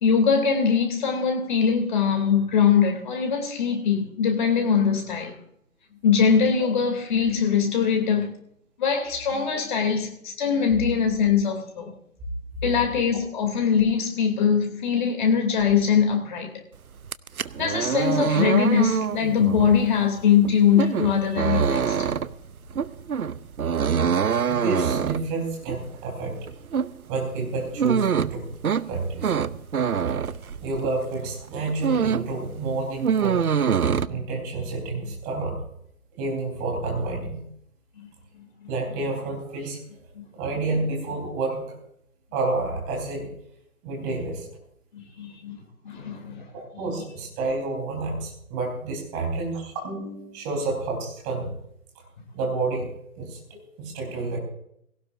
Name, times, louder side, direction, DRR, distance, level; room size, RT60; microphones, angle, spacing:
voice 1, 0.0-5.3 6.0-8.3 8.8-11.9 12.6-16.5 17.6-22.0 40.1-40.2 44.9-45.6 45.8-46.5, left 7 dB, 35° left, 2.9 m, -22 dB
sound 1, 17.0-31.1 31.4-32.4 32.6-34.1, right 7 dB, 75° right, 0.8 m, -25 dB
voice 2, 24.5-26.4 27.1-28.5 28.9-29.3 30.6-33.4 34.1-35.6 36.2-37.4 38.7-39.8 40.3-41.8 42.3-43.3 43.8-44.5 46.5-51.5 52.3-54.4, right 3 dB, 15° right, 3.9 m, -29 dB
19.5 x 17.5 x 2.6 m
figure-of-eight pair, 150°, 43 cm